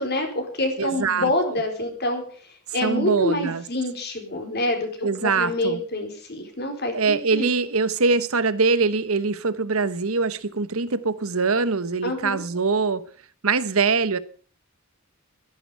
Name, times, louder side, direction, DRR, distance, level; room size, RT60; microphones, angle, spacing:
voice 1, 0.0-2.2 2.7-7.5 12.0-12.4, left 1 dB, 50° left, 4.2 m, -26 dB
voice 2, 0.8-1.6 2.8-3.6 5.0-5.8 6.9-13.0 13.4-14.2, right 4 dB, 75° right, 1.1 m, -23 dB
14.0 x 11.0 x 6.7 m
head